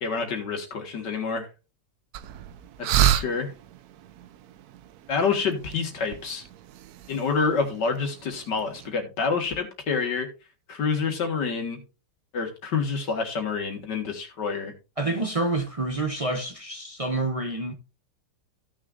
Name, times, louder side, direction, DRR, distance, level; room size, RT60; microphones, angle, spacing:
voice 1, 0.0-1.5 2.8-3.5 5.1-6.4 7.1-10.3 10.7-11.8 12.3-14.7, left 5 dB, 80° left, 2.3 m, -27 dB
sound 1, 2.1-8.9, right 11 dB, 70° right, 1.1 m, -30 dB
voice 2, 15.0-17.7, right 2 dB, 50° right, 0.4 m, -28 dB
15.5 x 6.5 x 2.5 m
omnidirectional pair, 1.8 m